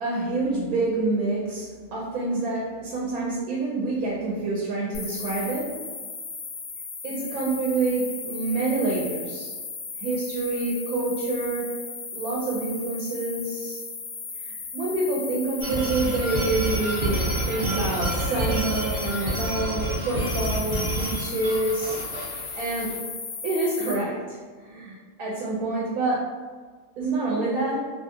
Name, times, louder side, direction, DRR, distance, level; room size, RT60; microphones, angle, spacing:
voice 1, 0.0-5.8 7.0-9.5 10.0-11.7 12.1-13.8 14.4-22.0 22.6-22.9 23.4-26.3 27.0-27.8, right 2 dB, 85° right, -4 dB, 1.0 m, -27 dB
sound 1, 4.9-23.9, left 5 dB, 85° left, 1.1 m, -36 dB
sound 2, 15.6-22.9, right 1 dB, 50° right, 1.0 m, -28 dB
2.7 x 2.4 x 2.6 m, 1.5 s
omnidirectional pair, 1.5 m